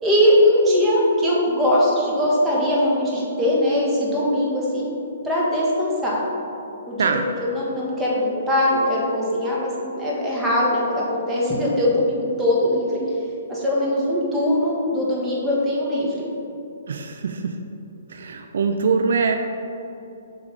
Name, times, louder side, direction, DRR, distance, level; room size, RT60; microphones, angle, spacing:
voice 1, 0.0-4.9 5.2-6.2 6.9-7.1 7.4-13.0 13.5-16.3, left 1 dB, 10° right, -5 dB, 1.5 m, -21 dB
voice 2, 16.9-17.5 18.1-19.4, right 5 dB, 65° right, 5 dB, 0.3 m, -23 dB
6.9 x 3.1 x 5.0 m, 2.8 s
hypercardioid pair, 130°, 0 cm